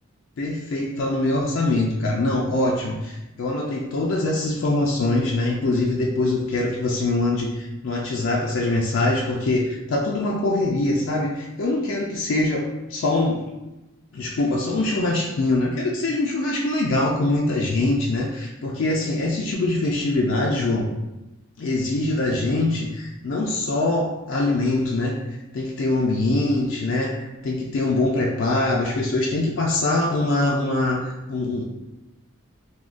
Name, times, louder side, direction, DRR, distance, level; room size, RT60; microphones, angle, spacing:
voice 1, 0.4-13.5 14.1-20.9 21.6-31.6, left 2 dB, 70° left, -2 dB, 0.4 m, -23 dB
3.4 x 2.2 x 2.4 m, 1.0 s
head